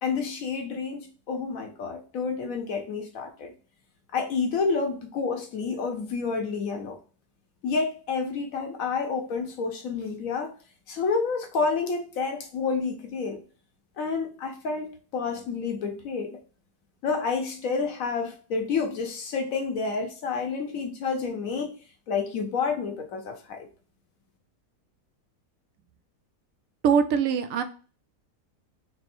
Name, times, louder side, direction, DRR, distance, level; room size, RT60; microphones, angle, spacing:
voice 1, 0.0-3.5 4.1-7.0 7.6-10.5 10.9-13.4 14.0-16.4 17.0-21.8 22.1-23.7, left 4 dB, 65° left, 1.0 m, -29 dB
voice 2, 26.8-27.6, right 7 dB, 65° right, 0.9 m, -22 dB
4.3 x 2.0 x 4.1 m
omnidirectional pair, 1.7 m